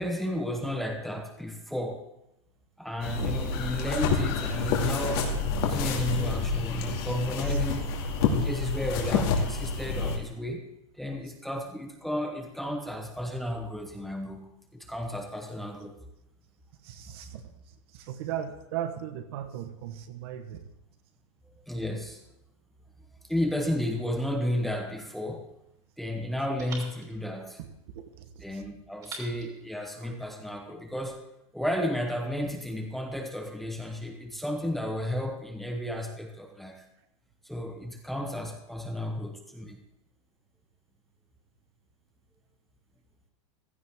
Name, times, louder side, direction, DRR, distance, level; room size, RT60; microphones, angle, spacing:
voice 1, 0.0-2.0 2.8-5.3 5.6-10.6 11.0-16.0 21.5-22.2 23.3-25.4 26.0-27.6 28.4-31.2 31.5-36.8 37.4-39.8, left 1 dB, ahead, 2 dB, 1.0 m, -33 dB
sound 1, 3.0-10.2, left 4 dB, 50° left, 2.4 m, -28 dB
voice 2, 16.8-20.6 27.6-27.7 27.9-28.6 29.9-30.1, right 10 dB, 50° right, 8 dB, 1.3 m, -38 dB
sound 2, 24.8-26.0 26.6-28.2 29.0-30.6, right 3 dB, 20° right, 3.1 m, -48 dB
15.5 x 13.5 x 3.7 m, 0.85 s
supercardioid pair, 165°, 16 cm